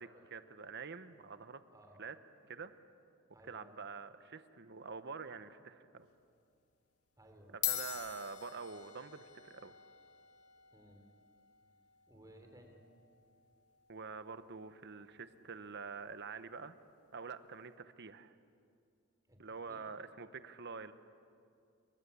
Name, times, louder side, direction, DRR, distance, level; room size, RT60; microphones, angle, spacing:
voice 1, 0.0-1.6 2.0-2.2 2.4-2.7 3.5-6.1 7.5-9.7 13.9-16.7 17.1-18.4 19.4-20.9, right 5 dB, 50° right, 11 dB, 1.1 m, -46 dB
voice 2, 1.7-2.0 3.3-3.8 7.2-7.6 10.7-11.1 12.1-12.8 19.3-19.8, right 1 dB, 15° right, 4 dB, 3.6 m, -59 dB
sound 1, 6.0-6.3 7.1-7.2 7.5-16.2, left 13 dB, 85° left, 1.9 m, -46 dB
29.0 x 23.0 x 8.5 m, 2.4 s
head